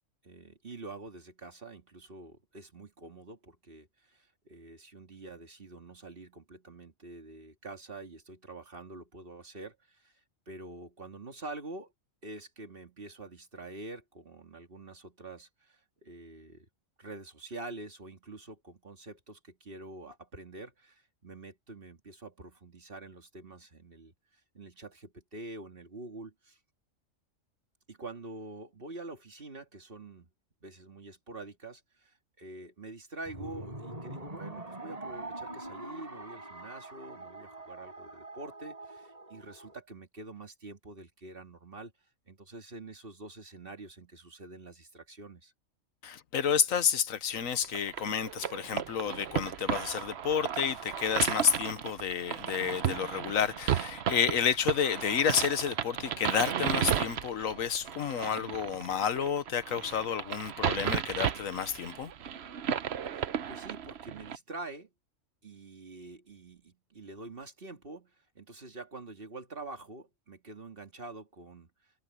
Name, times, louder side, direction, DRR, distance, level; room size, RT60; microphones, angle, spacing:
voice 1, 0.2-10.1 10.5-11.9 12.2-16.7 17.0-24.1 24.5-26.6 27.9-30.3 30.6-41.9 42.3-45.5 58.3-58.6 63.1-64.9 65.4-71.7, right 2 dB, 45° right, 2.4 m, -46 dB
sound 1, 33.3-39.8, right 2 dB, 30° right, 5.1 m, -44 dB
voice 2, 46.0-62.1, left 8 dB, 85° left, 1.4 m, -30 dB
sound 2, 47.6-64.4, right 9 dB, 60° right, 1.0 m, -34 dB
omnidirectional pair, 1.4 m